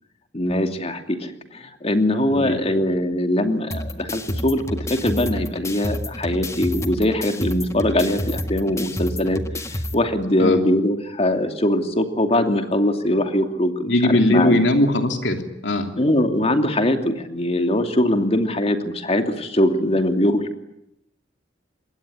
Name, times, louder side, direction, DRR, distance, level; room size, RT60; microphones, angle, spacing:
voice 1, 0.3-14.6 16.0-20.6, left 1 dB, 35° left, 6 dB, 2.8 m, -22 dB
voice 2, 2.3-2.8 10.4-10.6 13.9-15.9, left 1 dB, 75° left, 5 dB, 3.1 m, -20 dB
sound 1, 3.7-9.9, left 1 dB, 15° left, 1.7 m, -29 dB
26.5 x 22.0 x 9.9 m, 0.80 s
head